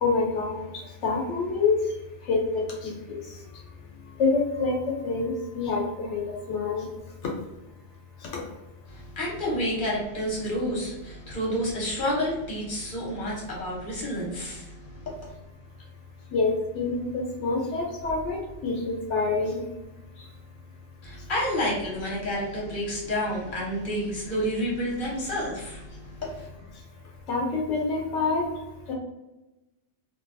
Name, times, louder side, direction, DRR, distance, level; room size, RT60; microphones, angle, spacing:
voice 1, 0.0-0.6 1.0-1.7 2.3-2.4 2.8-3.2 4.2-4.7 5.0-6.9 8.3-8.4 16.3-19.6 27.3-28.4 28.9-29.0, left 4 dB, 80° left, -1 dB, 0.9 m, -26 dB
voice 2, 8.9-15.3 21.0-26.5, equal, 50° left, -4 dB, 1.0 m, -30 dB
2.5 x 2.2 x 2.5 m, 1.0 s
omnidirectional pair, 1.2 m